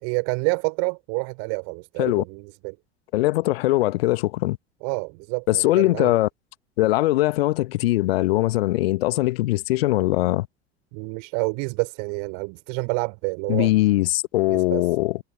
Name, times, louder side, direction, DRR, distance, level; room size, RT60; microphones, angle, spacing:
voice 1, 0.0-2.8 4.8-6.1 10.9-13.7 14.5-14.8, right 40 dB or more, 55° right, 4.7 m, -28 dB
voice 2, 3.1-4.6 5.5-6.3 6.8-10.5 13.5-15.2, left 17 dB, 60° left, 1.5 m, -21 dB
figure-of-eight pair, 70°, 33 cm